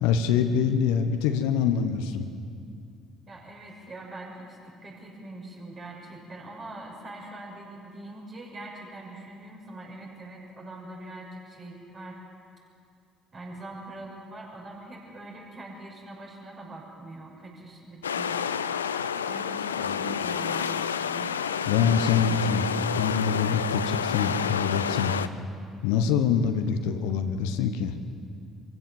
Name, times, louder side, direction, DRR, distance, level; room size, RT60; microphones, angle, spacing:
voice 1, 0.0-2.3 19.9-20.0 21.7-22.7 23.0-25.1 25.8-27.9, left 7 dB, 70° left, 8 dB, 1.1 m, -25 dB
voice 2, 3.3-12.2 13.3-18.5 19.3-21.3, right 2 dB, 40° right, -2 dB, 6.5 m, -43 dB
sound 1, 18.0-25.3, left 7 dB, 85° left, 0.5 m, -29 dB
25.0 x 15.5 x 7.4 m, 2.4 s
figure-of-eight pair, 55°, 0 cm